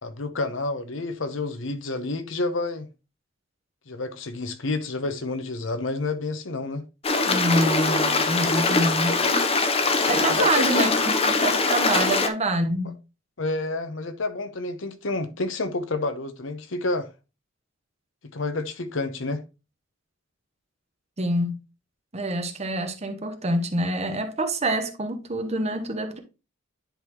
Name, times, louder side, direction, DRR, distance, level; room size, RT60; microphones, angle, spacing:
voice 1, 0.0-2.9 3.9-6.8 10.3-10.9 11.9-12.0 13.4-17.1 18.3-19.4, left 2 dB, 70° left, 0.9 m, -29 dB
Stream, 7.0-12.3, left 3 dB, 30° left, 0.8 m, -22 dB
voice 2, 7.3-9.2 10.1-12.9 21.2-21.6 22.1-26.2, right 1 dB, 35° right, 1.0 m, -26 dB
10.0 x 4.1 x 3.0 m
head